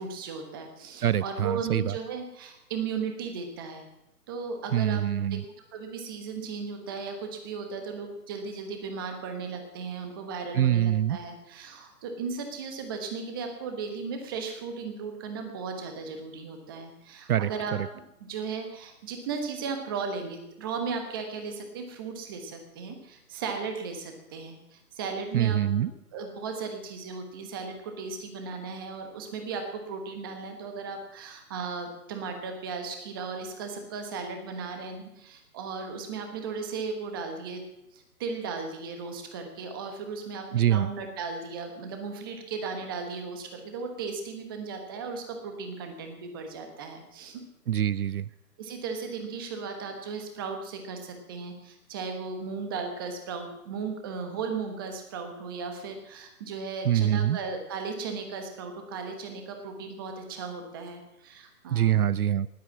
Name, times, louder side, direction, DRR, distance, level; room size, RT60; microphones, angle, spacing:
voice 1, 0.0-3.8 4.3-5.0 5.3-5.4 5.7-18.0 18.3-37.6 37.9-47.4 48.6-62.0, right 5 dB, 15° right, 5 dB, 1.2 m, -36 dB
voice 2, 1.0-2.0 4.7-5.4 10.6-11.2 17.3-17.9 25.3-25.9 40.5-40.9 47.7-48.2 56.8-57.4 61.7-62.5, right 11 dB, 70° right, 19 dB, 0.5 m, -24 dB
19.5 x 8.3 x 7.4 m, 0.84 s
hypercardioid pair, 160°, 47 cm